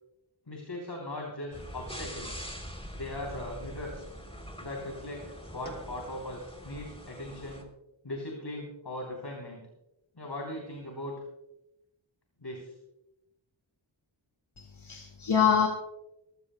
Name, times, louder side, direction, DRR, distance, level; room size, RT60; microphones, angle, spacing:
voice 1, 0.5-2.5 3.0-4.1 4.6-5.2 5.5-7.6 8.0-9.6 10.2-11.1 12.4-12.7, left 1 dB, 60° left, -1 dB, 3.5 m, -39 dB
sound 1, 1.5-7.6, equal, 10° left, 3.3 m, -43 dB
voice 2, 14.6-15.7, left 7 dB, 85° left, 1 dB, 2.0 m, -25 dB
21.5 x 15.0 x 2.2 m, 0.89 s
wide cardioid pair, 60°, 47 cm